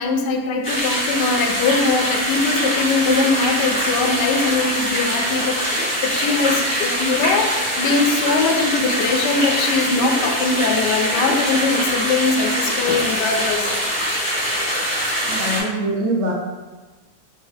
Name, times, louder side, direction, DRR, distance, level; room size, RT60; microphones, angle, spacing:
voice 1, 0.0-13.7, left 4 dB, 85° left, 3 dB, 1.2 m, -21 dB
sound 1, 0.6-15.6, equal, 35° left, 1.8 m, -23 dB
voice 2, 15.3-16.3, right 1 dB, 60° right, -2 dB, 0.8 m, -23 dB
4.5 x 2.9 x 3.3 m, 1.2 s
omnidirectional pair, 1.8 m